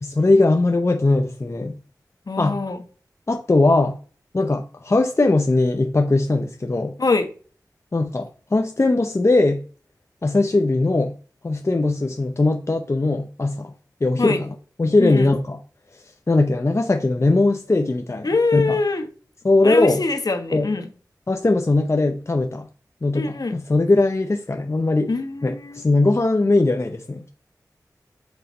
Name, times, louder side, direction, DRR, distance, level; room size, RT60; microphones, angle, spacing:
voice 1, 0.0-1.8 2.4-2.6 3.3-4.0 4.3-7.0 7.9-9.6 10.2-11.1 11.4-13.7 14.0-14.4 14.8-15.6 16.3-18.8 19.4-20.0 20.5-20.7 21.3-22.7 23.0-25.1 25.4-27.3, left 2 dB, 40° left, 0.7 m, -20 dB
voice 2, 2.3-2.8 7.0-7.3 14.2-14.4 15.0-15.3 18.2-19.1 19.6-20.9 23.1-23.5 25.1-25.8, left 3 dB, 65° left, 1.2 m, -23 dB
8.0 x 4.0 x 5.3 m
wide cardioid pair, 60°, 7 cm